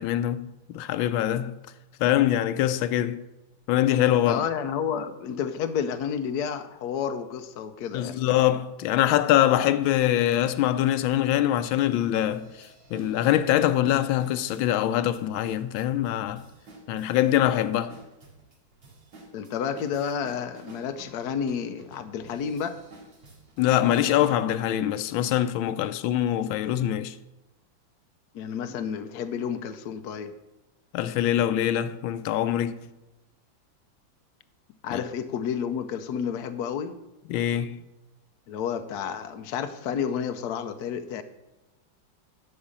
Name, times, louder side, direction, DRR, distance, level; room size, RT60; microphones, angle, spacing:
voice 1, 0.0-1.6 2.0-3.2 3.7-4.4 7.9-16.5 16.9-17.9 23.6-27.2 30.9-32.8 34.9-35.0 37.3-37.8, left 12 dB, 85° left, 1.4 m, -24 dB
voice 2, 4.2-8.2 19.3-22.8 28.3-30.3 34.8-37.0 38.5-41.2, left 7 dB, 65° left, 1.1 m, -30 dB
sound 1, 9.8-9.9 10.5-10.6 11.1-24.6, right 2 dB, 70° right, 2.9 m, -51 dB
11.5 x 5.0 x 7.1 m
omnidirectional pair, 2.1 m